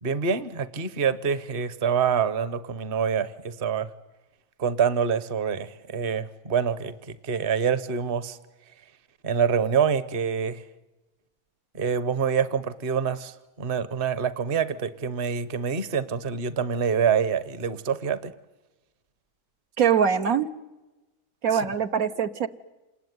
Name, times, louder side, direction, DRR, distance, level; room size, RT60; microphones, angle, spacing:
voice 1, 0.0-3.9 4.6-8.4 9.2-10.6 11.7-18.3 21.5-21.6, right 7 dB, 40° right, 15 dB, 1.2 m, -26 dB
voice 2, 19.8-20.5 21.4-22.5, right 7 dB, 75° right, 8 dB, 1.5 m, -23 dB
27.5 x 20.0 x 9.5 m, 1.1 s
omnidirectional pair, 1.5 m